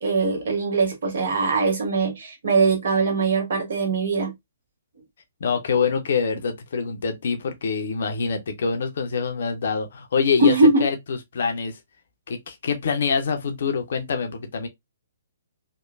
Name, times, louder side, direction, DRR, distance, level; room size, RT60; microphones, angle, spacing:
voice 1, 0.0-4.3 10.4-10.8, right 3 dB, 55° right, 1.1 m, -21 dB
voice 2, 5.4-10.5 10.8-11.8 12.3-14.7, left 5 dB, 50° left, 0.5 m, -25 dB
3.0 x 2.1 x 2.3 m
figure-of-eight pair, 125°, 0 cm